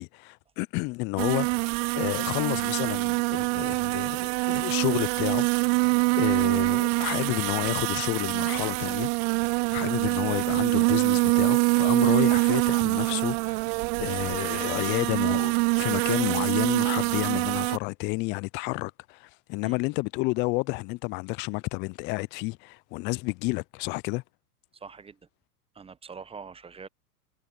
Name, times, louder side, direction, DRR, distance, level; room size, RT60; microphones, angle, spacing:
voice 1, 0.0-5.5 5.7-5.8 6.2-9.1 9.4-13.7 14.0-24.2, left 26 dB, 25° left, 0.4 m, -30 dB
sound 1, 1.2-17.8, right 33 dB, 40° right, 0.6 m, -25 dB
voice 2, 24.7-25.2 25.7-26.9, right 5 dB, 10° right, 0.8 m, -43 dB
hypercardioid pair, 100°, 46 cm